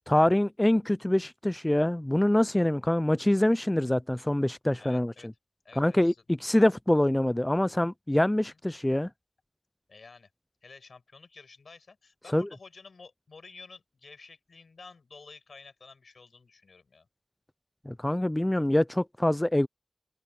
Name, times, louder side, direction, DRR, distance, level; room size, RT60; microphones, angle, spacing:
voice 1, 0.1-5.3 5.8-9.1 12.3-12.5 17.9-19.7, left 1 dB, 15° left, 0.3 m, -25 dB
voice 2, 4.8-5.3 5.6-6.2 8.4-8.6 9.9-10.3 10.6-17.1, left 4 dB, 85° left, 5.3 m, -51 dB
open air
wide cardioid pair, 70°, 0 cm